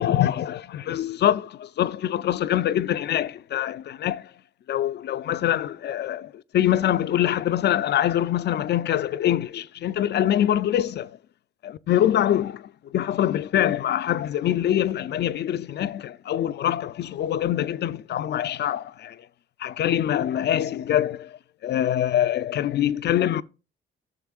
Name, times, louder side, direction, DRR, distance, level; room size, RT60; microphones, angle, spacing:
voice 1, 0.0-4.2 4.7-11.1 11.6-12.6 12.9-19.2 19.6-21.3 21.6-23.4, left 11 dB, 60° left, 0.5 m, -24 dB
13.5 x 6.6 x 2.4 m
cardioid pair, 90°, 20 cm